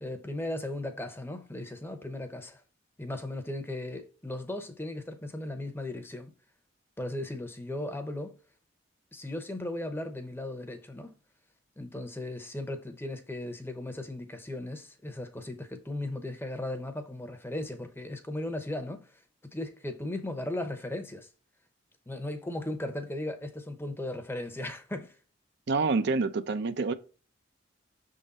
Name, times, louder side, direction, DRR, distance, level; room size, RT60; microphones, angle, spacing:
voice 1, 0.0-2.6 3.0-6.3 7.0-8.3 9.1-11.1 11.8-19.1 19.4-21.3 22.1-25.1, left 1 dB, 10° left, 0.8 m, -37 dB
voice 2, 25.7-26.9, right 4 dB, 60° right, 0.5 m, -27 dB
6.2 x 3.8 x 4.1 m
head